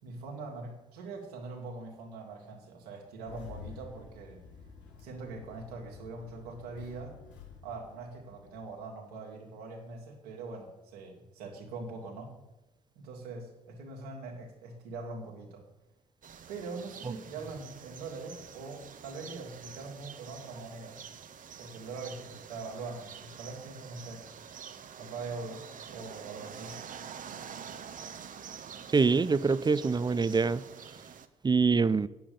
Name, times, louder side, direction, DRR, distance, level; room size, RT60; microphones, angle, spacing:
voice 1, 0.0-4.4 5.0-7.2 7.6-12.3 13.0-15.7 16.5-21.0 21.6-24.3 25.0-26.8, right 3 dB, 80° right, 0 dB, 2.0 m, -42 dB
Engine starting, 3.2-8.8, left 6 dB, 70° left, 1.6 m, -50 dB
sound 1, 16.2-31.3, right 7 dB, 45° right, 0.9 m, -47 dB
voice 2, 28.9-30.6 31.4-32.1, right 4 dB, 20° right, 17 dB, 0.5 m, -25 dB
8.7 x 7.6 x 6.8 m, 0.97 s
hypercardioid pair, 45°, 19 cm